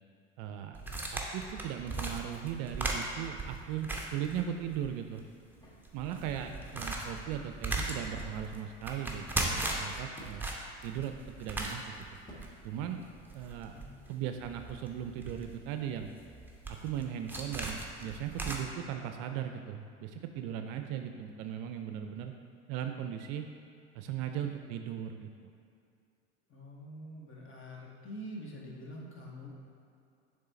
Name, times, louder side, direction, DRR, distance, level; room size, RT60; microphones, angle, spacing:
voice 1, 0.4-0.8 1.1-5.2 5.9-10.4 10.8-11.9 12.6-13.0 13.3-13.7 14.1-16.1 16.7-22.3 22.7-23.5 23.9-25.5, right 9 dB, 55° right, 6 dB, 0.5 m, -38 dB
sound 1, 0.7-4.9 5.2-5.3 5.8-18.6, right 2 dB, 5° right, 0.7 m, -38 dB
sound 2, 5.5-13.6, equal, 10° left, 1.4 m, -58 dB
voice 2, 6.3-6.6 13.7-13.9 26.5-29.5, equal, 30° left, -2 dB, 1.3 m, -46 dB
6.7 x 3.4 x 4.2 m, 2.5 s
hypercardioid pair, 75°, 38 cm